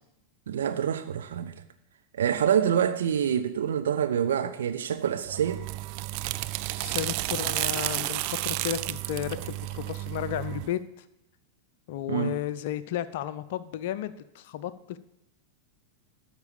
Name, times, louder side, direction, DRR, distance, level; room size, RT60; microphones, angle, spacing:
voice 1, 0.5-1.5 2.1-5.6 12.1-12.3, right 8 dB, 65° right, 0.8 m, -26 dB
sound 1, 5.2-10.7, right 18 dB, 45° right, 0.3 m, -32 dB
voice 2, 6.8-10.8 11.9-15.0, left 11 dB, 50° left, 0.5 m, -33 dB
13.0 x 4.5 x 7.0 m
figure-of-eight pair, 90°, 0 cm